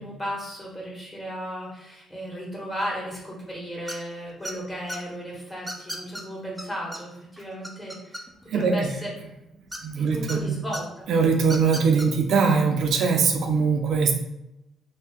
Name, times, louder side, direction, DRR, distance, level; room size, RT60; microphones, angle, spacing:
voice 1, 0.0-8.2 8.5-9.1 10.0-11.1, equal, 15° left, -3 dB, 1.4 m, -35 dB
sound 1, 3.9-4.1 4.4-5.0 5.7-6.2 6.6-6.7 6.9-7.0 7.4-8.5 9.7-10.4 10.7-10.8 11.4-12.1, equal, ahead, 0.5 m, -35 dB
voice 2, 8.5-8.9 9.8-10.6 11.1-14.1, right 5 dB, 70° right, 3 dB, 0.5 m, -21 dB
2.7 x 2.7 x 3.5 m, 0.87 s
cardioid pair, 90°, 0 cm